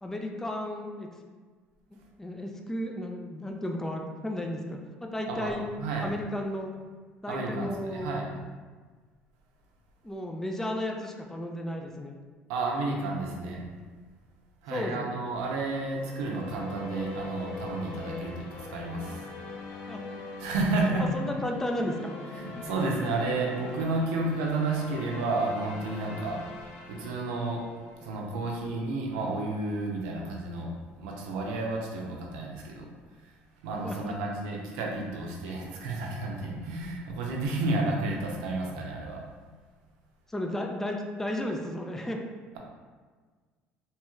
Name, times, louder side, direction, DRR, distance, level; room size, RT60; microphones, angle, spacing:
voice 1, 0.0-1.1 2.2-5.6 6.0-6.7 7.2-8.2 10.0-12.2 14.7-15.1 19.9-20.0 21.0-22.1 33.8-34.1 40.3-42.2, left 1 dB, 10° left, 2 dB, 0.4 m, -33 dB
voice 2, 5.8-6.1 7.3-8.3 12.5-13.6 14.6-19.3 20.4-21.1 22.3-26.4 26.9-27.6 28.0-30.7 31.0-32.9 33.2-33.3 33.6-39.2, right 2 dB, 85° right, -1 dB, 0.6 m, -31 dB
sound 1, 15.9-28.3, left 3 dB, 85° left, 0.6 m, -42 dB
3.0 x 2.9 x 2.3 m, 1.5 s
supercardioid pair, 80°, 5 cm